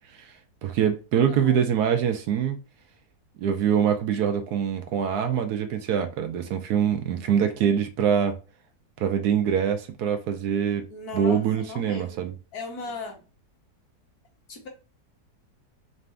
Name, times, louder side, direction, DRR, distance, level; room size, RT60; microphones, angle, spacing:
voice 1, 0.6-2.6 3.4-8.4 9.0-10.9 11.1-12.3, right 8 dB, 75° right, 1.1 m, -24 dB
voice 2, 1.1-1.6 10.9-12.2 12.5-13.2 14.5-14.7, left 3 dB, 60° left, 1.6 m, -37 dB
4.1 x 2.6 x 3.4 m
omnidirectional pair, 1.9 m